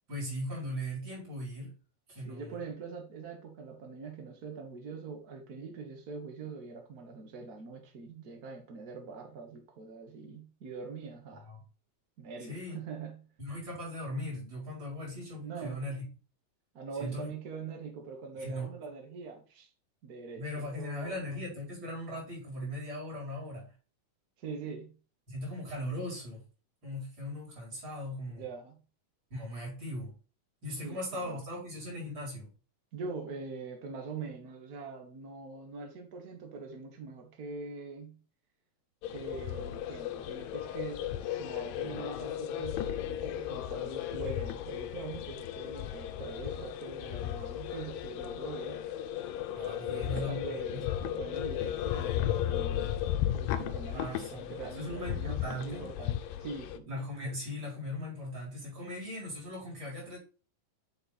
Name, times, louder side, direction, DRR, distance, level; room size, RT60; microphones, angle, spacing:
voice 1, 0.1-1.7 2.1-2.6 11.4-11.6 12.5-12.8 13.4-16.0 16.9-17.3 18.4-18.7 20.3-23.7 25.3-26.4 26.8-28.4 29.3-30.1 30.6-32.5 49.5-50.8 53.9-55.9 56.9-60.2, left 1 dB, 35° right, 4.6 m, -39 dB
voice 2, 2.2-11.4 12.2-13.3 15.4-15.8 16.7-19.7 20.0-21.2 24.4-25.0 28.4-28.8 30.8-31.4 32.9-38.2 39.1-41.1 41.4-48.8 49.9-52.9 53.3-57.0, right 4 dB, 75° right, 0.8 m, -43 dB
sound 1, 39.0-56.8, left 11 dB, 80° left, 2.2 m, -35 dB
7.9 x 4.4 x 4.2 m
omnidirectional pair, 3.9 m